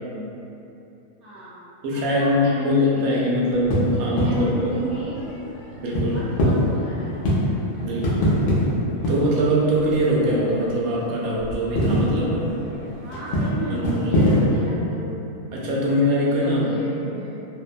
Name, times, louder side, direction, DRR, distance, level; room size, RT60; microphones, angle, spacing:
voice 1, 1.2-3.5 3.9-5.2 6.1-7.2 7.9-8.5 13.0-15.1 15.7-15.9 16.3-17.4, right 1 dB, 50° right, -10 dB, 0.8 m, -36 dB
voice 2, 1.8-4.7 5.8-6.2 7.8-8.3 9.1-12.5 13.7-14.2 15.5-16.7 17.0-17.1, equal, 90° right, -5 dB, 1.0 m, -22 dB
sound 1, 3.5-11.0 11.2-14.6, equal, 75° left, 0.5 m, -24 dB
2.8 x 2.0 x 2.4 m, 2.9 s
omnidirectional pair, 1.4 m